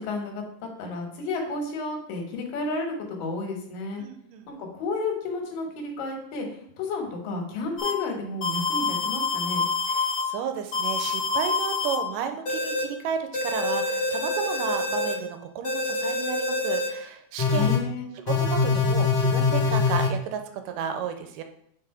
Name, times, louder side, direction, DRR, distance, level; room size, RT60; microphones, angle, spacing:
voice 1, 0.0-4.0 4.5-9.6 17.5-18.1, left 3 dB, 90° left, 2 dB, 3.0 m, -32 dB
voice 2, 4.0-4.5 9.9-17.8 18.3-21.4, right 8 dB, 85° right, 7 dB, 2.2 m, -33 dB
sound 1, 7.8-7.9 8.4-10.2 10.7-12.0 12.5-12.8 13.3-15.1 15.6-16.9 17.4-17.8 18.3-20.1, left 4 dB, 55° left, 1.2 m, -25 dB
5.4 x 4.8 x 4.8 m, 0.71 s
omnidirectional pair, 3.8 m